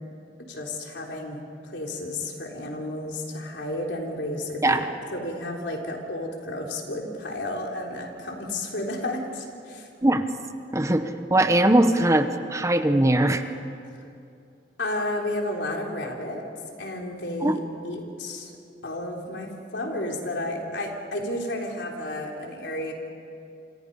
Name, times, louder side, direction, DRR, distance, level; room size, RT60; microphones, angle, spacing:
voice 1, 0.5-4.8 5.1-9.9 14.8-16.4 16.8-18.5 18.8-22.9, left 1 dB, 85° left, 0 dB, 3.7 m, -32 dB
voice 2, 10.7-13.4 17.4-17.6, right 1 dB, 15° right, 8 dB, 0.9 m, -20 dB
28.0 x 26.0 x 5.5 m, 2.5 s
head